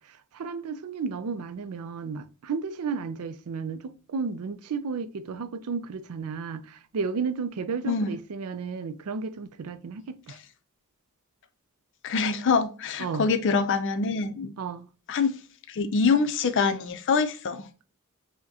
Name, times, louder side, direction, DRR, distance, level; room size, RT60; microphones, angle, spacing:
voice 1, 0.1-10.4 13.0-13.3 14.6-14.9, right 5 dB, 75° right, 0.4 m, -33 dB
voice 2, 7.9-8.2 12.0-14.5 15.1-15.4 15.7-17.7, left 4 dB, 55° left, 0.5 m, -25 dB
5.8 x 2.2 x 2.6 m
head